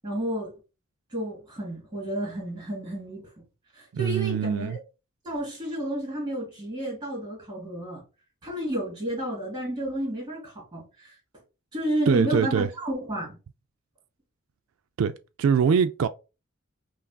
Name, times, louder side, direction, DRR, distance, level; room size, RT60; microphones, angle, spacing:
voice 1, 0.0-0.5 1.1-3.4 3.7-4.8 5.2-8.0 8.4-11.2 11.7-13.4, right 1 dB, 20° right, 2.0 m, -31 dB
voice 2, 3.9-4.8 12.1-12.7 15.0-15.1 15.4-16.1, right 6 dB, 85° right, 0.3 m, -23 dB
5.6 x 2.5 x 2.2 m
head